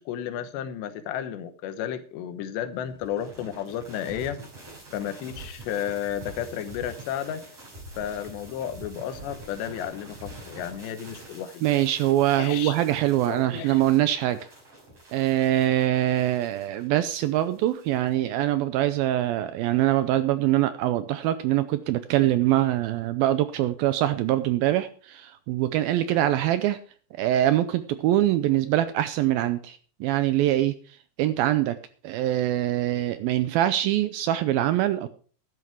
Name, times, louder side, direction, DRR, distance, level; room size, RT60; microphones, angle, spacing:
voice 1, 0.0-4.4 4.9-7.4 8.0-11.7 12.4-12.8 13.3-13.8, left 10 dB, 90° left, 10 dB, 3.3 m, -33 dB
sound 1, 2.8-18.1, right 2 dB, 35° right, 6.6 m, -46 dB
voice 2, 11.6-14.4 15.1-26.8 27.1-30.8 31.2-31.8 32.0-35.1, right 13 dB, 80° right, 12 dB, 2.2 m, -23 dB
12.5 x 11.0 x 4.6 m, 0.41 s
omnidirectional pair, 4.8 m